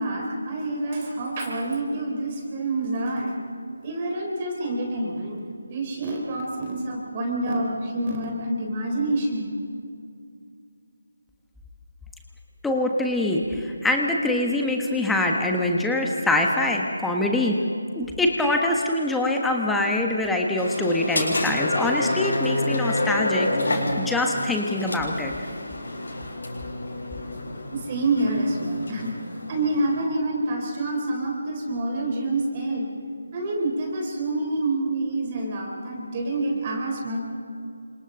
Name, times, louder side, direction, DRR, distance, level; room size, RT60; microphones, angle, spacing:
voice 1, 0.0-3.3 3.8-5.4 5.7-9.5 27.7-29.1 29.5-32.9 33.3-37.2, right 2 dB, 25° right, 0 dB, 3.9 m, -27 dB
voice 2, 12.6-17.6 17.9-25.3, left 2 dB, 5° left, 1 dB, 1.4 m, -24 dB
sound 1, 20.6-30.1, left 1 dB, 60° left, 6.8 m, -29 dB
29.5 x 27.0 x 3.9 m, 2.4 s
figure-of-eight pair, 155°, 0 cm